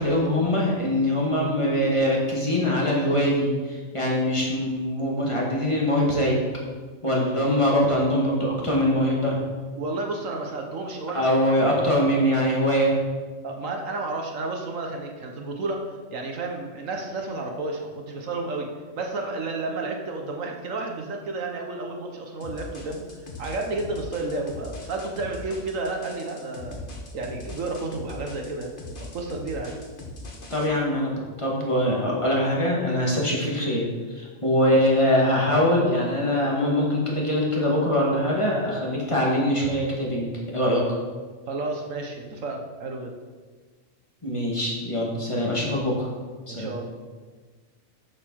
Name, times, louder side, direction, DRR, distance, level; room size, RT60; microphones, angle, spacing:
voice 1, 0.0-6.4 7.0-9.4 11.1-13.0 30.5-40.8 44.2-46.1 46.5-46.8, equal, 20° left, -3 dB, 2.0 m, -23 dB
voice 2, 9.8-11.4 13.4-23.0 23.4-26.8 27.1-28.7 29.0-29.7 41.5-43.1 46.5-47.0, right 2 dB, 70° right, 2 dB, 1.4 m, -31 dB
sound 1, 22.4-30.7, left 2 dB, 40° left, 1.4 m, -40 dB
7.2 x 6.7 x 6.3 m, 1.4 s
omnidirectional pair, 1.4 m